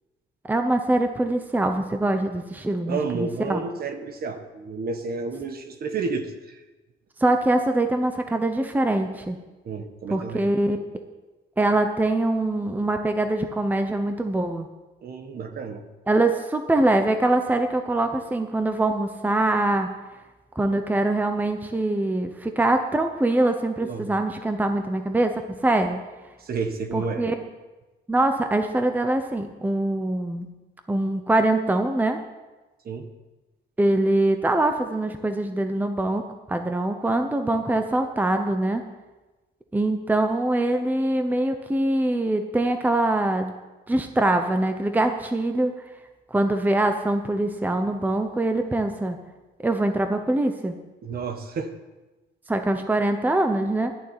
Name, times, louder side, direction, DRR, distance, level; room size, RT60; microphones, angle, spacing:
voice 1, 0.4-3.6 7.2-9.4 10.1-10.8 11.6-14.7 16.1-19.9 20.6-26.0 26.9-27.3 28.1-30.5 30.9-32.2 33.8-38.9 39.7-43.5 43.9-45.7 46.3-49.2 49.6-50.8 52.5-53.9, right 2 dB, 10° right, 6 dB, 0.9 m, -23 dB
voice 2, 2.9-6.6 9.6-10.5 15.0-15.8 23.8-24.1 26.4-27.2 32.8-33.1 51.0-51.8, right 4 dB, 50° right, 7 dB, 1.4 m, -31 dB
11.5 x 7.3 x 9.9 m, 1.2 s
cardioid pair, 145°, 20 cm